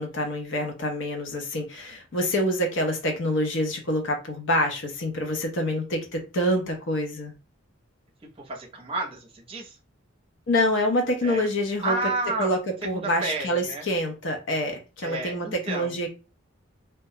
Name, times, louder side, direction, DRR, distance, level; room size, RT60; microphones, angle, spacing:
voice 1, 0.0-7.3 10.5-12.0 12.4-12.6 12.8-16.1, left 1 dB, 60° left, 0.6 m, -26 dB
voice 2, 8.4-9.8 11.2-11.5 11.8-12.5 12.9-13.9 15.0-16.0, right 2 dB, 25° right, 0.6 m, -31 dB
2.2 x 2.1 x 2.7 m
head